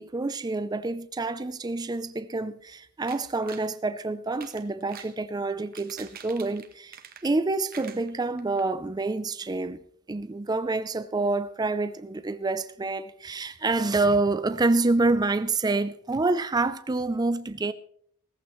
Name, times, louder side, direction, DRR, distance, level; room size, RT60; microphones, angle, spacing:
voice 1, 0.0-9.8 10.1-17.7, right 3 dB, 20° right, 0.4 m, -27 dB
sound 1, 3.1-3.7 4.3-5.2 5.6-7.4 7.7-8.6 9.0-9.1 9.4-9.5, right 7 dB, 40° right, 1.1 m, -46 dB
18.0 x 14.5 x 3.1 m
head